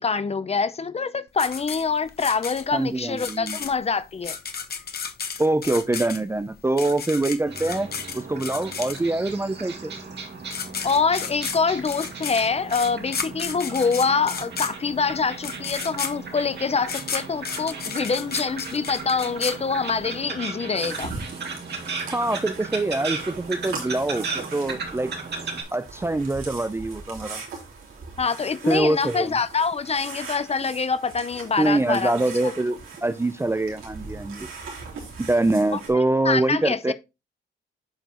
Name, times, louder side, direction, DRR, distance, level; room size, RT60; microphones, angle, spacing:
voice 1, 0.0-4.4 10.8-21.1 28.2-32.1 32.4-32.5 35.7-35.8 36.2-36.9, left 5 dB, 30° left, 0.6 m, -25 dB
sound 1, 1.4-9.3 10.2-10.3 10.5-20.1, left 6 dB, 50° left, 1.1 m, -33 dB
voice 2, 2.7-3.6 5.4-7.9 8.1-9.9 22.1-25.1 25.7-27.4 28.6-29.3 31.6-34.5 35.2-36.9, right 2 dB, 10° right, 0.4 m, -24 dB
sound 2, 7.5-25.6, right 4 dB, 55° right, 2.2 m, -36 dB
sound 3, 20.8-35.9, right 4 dB, 85° right, 3.3 m, -40 dB
8.9 x 5.1 x 3.0 m
cardioid pair, 110°, 20 cm